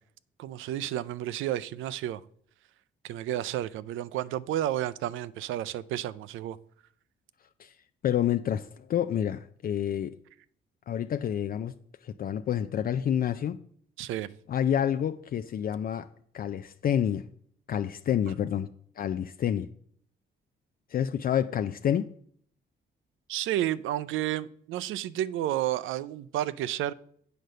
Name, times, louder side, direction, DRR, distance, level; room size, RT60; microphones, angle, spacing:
voice 1, 0.4-2.2 3.0-6.6 14.0-14.3 23.3-26.9, right 13 dB, 80° right, 0.4 m, -31 dB
voice 2, 8.0-10.2 10.9-11.7 12.0-13.6 14.5-16.1 16.3-17.3 17.7-18.7 19.0-19.7 20.9-22.1, left 9 dB, 45° left, 0.4 m, -28 dB
7.8 x 5.0 x 6.6 m
cardioid pair, 90°, 20 cm